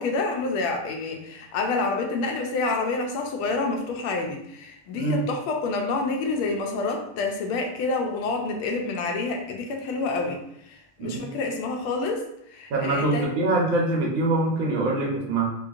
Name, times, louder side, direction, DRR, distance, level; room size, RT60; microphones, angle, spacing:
voice 1, 0.0-10.4 10.7-12.2 12.5-13.3, left 3 dB, 80° left, 2 dB, 1.4 m, -28 dB
voice 2, 12.7-15.6, right 2 dB, 70° right, -1 dB, 1.4 m, -24 dB
4.5 x 2.5 x 2.4 m, 0.77 s
omnidirectional pair, 2.3 m